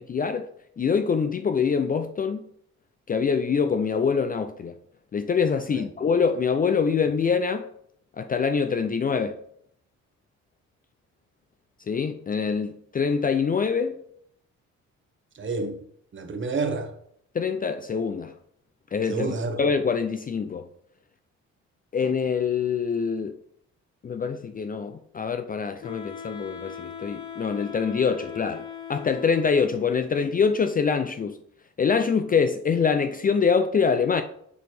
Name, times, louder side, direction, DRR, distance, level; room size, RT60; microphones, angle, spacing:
voice 1, 0.1-0.5 0.8-2.4 3.1-4.8 5.1-7.7 8.2-9.4 11.9-14.0 17.3-18.3 18.9-19.3 19.6-20.7 21.9-23.4 24.0-28.6 28.9-31.4 31.8-34.2, left 6 dB, 30° left, 0.4 m, -24 dB
voice 2, 15.3-15.8 16.1-16.9 19.0-19.7, right 3 dB, 40° right, 1.1 m, -29 dB
Wind instrument woodwind instrument, 25.8-29.9, left 8 dB, 75° left, 1.4 m, -39 dB
6.7 x 4.2 x 3.3 m
cardioid pair, 90°, 30 cm